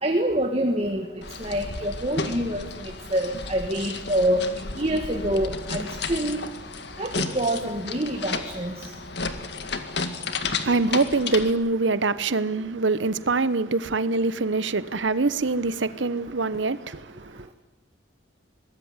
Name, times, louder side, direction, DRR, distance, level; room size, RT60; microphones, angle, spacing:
voice 1, 0.0-1.1 1.4-2.6 3.1-4.4 4.8-6.4 7.0-8.7, right 1 dB, 30° right, 1.9 m, -26 dB
sound 1, 1.2-11.5, left 4 dB, 60° left, 2.0 m, -33 dB
voice 2, 10.5-17.5, right 3 dB, 75° right, 1.0 m, -24 dB
23.0 x 19.0 x 9.7 m
head